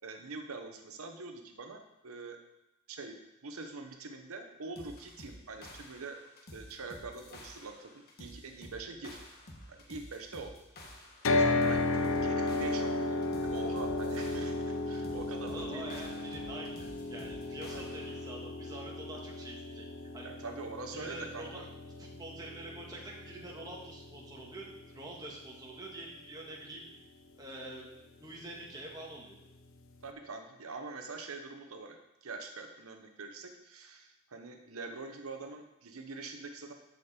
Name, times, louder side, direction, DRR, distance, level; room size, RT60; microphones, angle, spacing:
voice 1, 0.0-2.4 2.9-3.2 3.4-6.2 6.5-9.2 9.7-10.5 11.3-16.0 17.7-17.8 20.2-21.7 30.0-36.7, right 3 dB, 85° right, 5 dB, 0.9 m, -44 dB
sound 1, 4.8-18.3, left 1 dB, 45° left, 1.3 m, -51 dB
sound 2, 11.2-25.4, left 2 dB, 70° left, 0.6 m, -34 dB
voice 2, 15.5-19.9 20.1-20.3 20.9-21.7 22.0-26.8 27.4-27.9 28.2-29.4, right 1 dB, 20° right, -3 dB, 1.7 m, -46 dB
13.5 x 5.2 x 4.3 m, 0.95 s
head